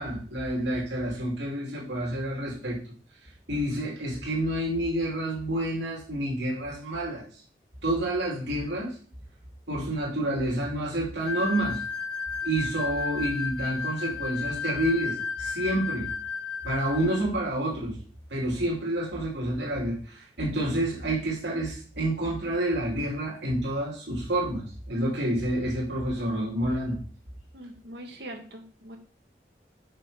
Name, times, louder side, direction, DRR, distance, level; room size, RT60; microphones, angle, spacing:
voice 1, 0.0-2.8 3.5-7.2 7.8-8.9 9.7-11.8 12.4-16.1 16.6-18.0 18.3-27.0, right 1 dB, 90° right, -3 dB, 2.9 m, -29 dB
sound 1, 11.2-17.3, left 6 dB, 30° left, 2.2 m, -33 dB
voice 2, 27.5-29.0, right 1 dB, 75° right, 3 dB, 1.7 m, -42 dB
6.6 x 5.6 x 4.9 m, 0.41 s
head